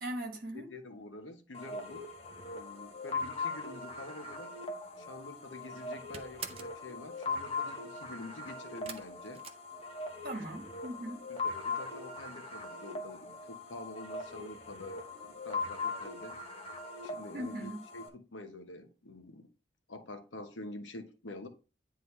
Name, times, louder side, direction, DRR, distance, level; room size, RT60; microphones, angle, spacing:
voice 1, 0.0-0.7 10.2-11.2 17.3-17.8, right 1 dB, 50° right, 1.7 m, -39 dB
voice 2, 0.5-2.1 2.5-4.6 5.0-9.4 11.3-16.4 17.0-19.5 19.9-21.5, left 2 dB, 85° left, 1.0 m, -47 dB
sound 1, 1.5-18.1, left 3 dB, 30° left, 0.9 m, -40 dB
sound 2, 5.1-5.5 5.8-6.8 8.8-10.3 10.6-11.2 11.5-11.6 12.0-12.1, right 7 dB, 30° right, 0.6 m, -46 dB
9.4 x 3.8 x 3.2 m
head